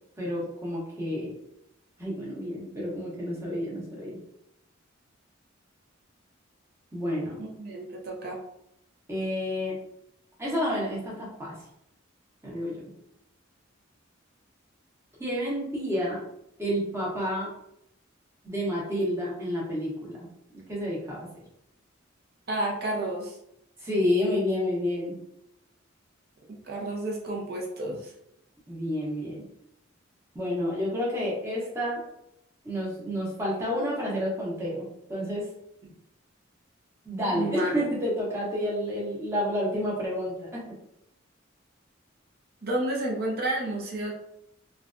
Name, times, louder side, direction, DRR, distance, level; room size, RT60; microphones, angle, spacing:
voice 1, 0.2-1.4 2.0-4.2 6.9-7.4 9.1-9.8 10.4-11.5 12.4-12.8 15.2-16.2 16.6-17.5 18.4-20.3 20.7-21.3 23.8-25.1 28.7-29.4 30.3-32.0 32.6-35.5 37.0-40.6, equal, 15° right, -5 dB, 0.9 m, -29 dB
voice 2, 7.4-8.4 22.5-23.4 26.6-28.1 35.8-35.9 37.3-37.7 42.6-44.1, right 1 dB, 50° right, -2 dB, 0.7 m, -31 dB
3.2 x 2.3 x 2.5 m, 0.79 s
head